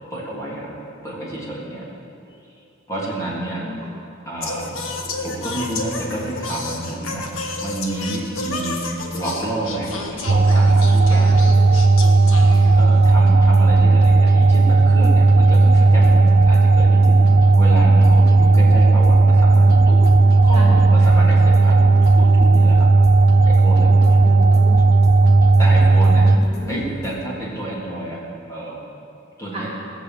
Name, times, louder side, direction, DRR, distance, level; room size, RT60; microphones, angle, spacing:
voice 1, 0.1-0.7 1.0-1.8 2.2-2.3 2.9-3.6 4.2-7.3 7.6-11.3 12.8-17.2 17.6-20.1 20.4-22.9 23.4-24.2 25.6-26.2 26.7-28.2 28.5-28.8 29.4-29.7, right 1 dB, 15° left, -6 dB, 3.2 m, -29 dB
voice 2, 3.2-3.7 20.5-20.7 24.2-24.8 26.2-26.8 29.5-29.7, equal, 30° right, -4 dB, 2.4 m, -34 dB
Singing, 4.4-13.1, left 3 dB, 70° left, 1.6 m, -31 dB
sound 1, 10.3-26.4, right 3 dB, 45° right, 0.5 m, -13 dB
sound 2, 11.3-27.3, left 1 dB, 55° left, 1.1 m, -36 dB
19.0 x 6.9 x 7.8 m, 2.6 s
head